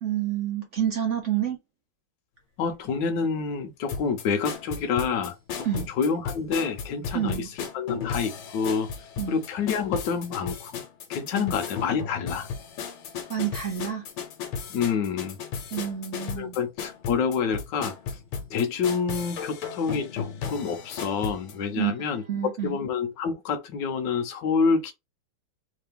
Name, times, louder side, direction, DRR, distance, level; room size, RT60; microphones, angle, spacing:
voice 1, 0.0-1.6 5.6-5.9 7.1-7.5 9.2-9.4 11.3-11.5 13.3-14.0 15.7-16.6 21.7-22.8, right 10 dB, 60° right, 0.7 m, -29 dB
voice 2, 2.6-5.3 5.7-7.5 7.7-8.9 9.3-10.8 11.1-12.5 14.7-15.4 16.4-18.2 18.5-22.2 22.6-24.9, left 5 dB, 65° left, 1.3 m, -28 dB
sound 1, 3.9-21.6, left 6 dB, 85° left, 1.7 m, -35 dB
3.8 x 2.8 x 3.4 m
omnidirectional pair, 2.4 m